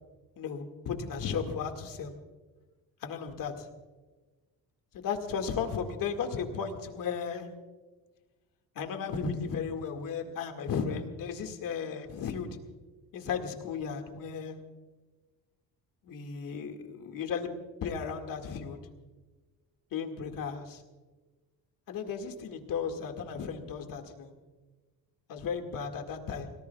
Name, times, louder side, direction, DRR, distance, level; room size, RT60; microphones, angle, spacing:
voice 1, 0.4-2.1 3.0-3.7 4.9-7.5 8.8-12.5 13.1-14.6 16.0-17.5 17.8-18.8 19.9-20.8 21.9-24.3 25.3-26.5, left 6 dB, 60° left, 4 dB, 2.1 m, -35 dB
30.0 x 18.5 x 2.4 m, 1.3 s
cardioid pair, 145°, 38 cm